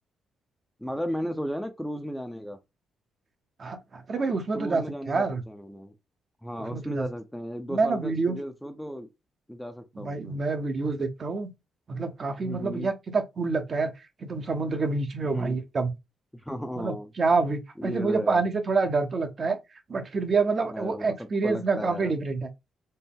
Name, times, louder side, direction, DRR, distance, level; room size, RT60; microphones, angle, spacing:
voice 1, 0.8-2.6 4.5-5.9 6.4-9.1 9.5-10.4 12.4-12.9 15.3-15.6 16.4-17.1 17.8-18.5 20.7-21.1 21.4-22.1, equal, ahead, 0.6 m, -35 dB
voice 2, 3.6-5.4 6.6-7.0 7.7-8.4 10.0-11.5 11.9-13.9 14.2-15.9 16.8-19.6 19.9-22.5, right 4 dB, 45° right, 0.8 m, -27 dB
4.3 x 2.1 x 3.6 m
cardioid pair, 85°, 0 cm